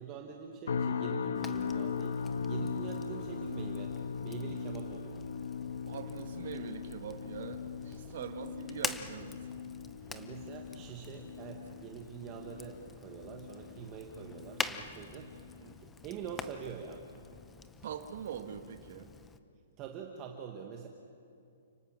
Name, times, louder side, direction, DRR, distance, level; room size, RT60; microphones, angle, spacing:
voice 1, 0.0-3.9 4.2-5.2 10.1-17.0 19.8-20.9, right 7 dB, 20° right, 2 dB, 1.4 m, -45 dB
sound 1, 0.7-15.9 16.2-16.6 17.1-17.3, left 6 dB, 80° left, 1.5 m, -39 dB
Fire, 1.3-19.4, left 5 dB, 10° left, 0.6 m, -46 dB
voice 2, 5.9-9.6 15.6-15.8 17.8-19.1, right 8 dB, 45° right, 7 dB, 1.6 m, -43 dB
30.0 x 18.5 x 7.5 m, 2.5 s
hypercardioid pair, 175°, 0 cm